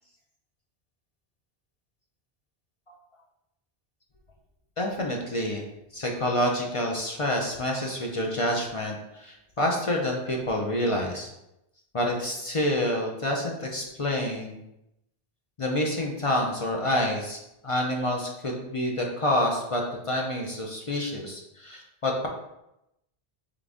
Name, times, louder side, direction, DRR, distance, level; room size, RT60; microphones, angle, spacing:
voice 1, 4.8-5.6 5.9-11.3 11.9-14.6 15.6-22.3, left 1 dB, 40° left, 0 dB, 0.5 m, -28 dB
3.8 x 3.3 x 3.5 m, 0.86 s
omnidirectional pair, 1.1 m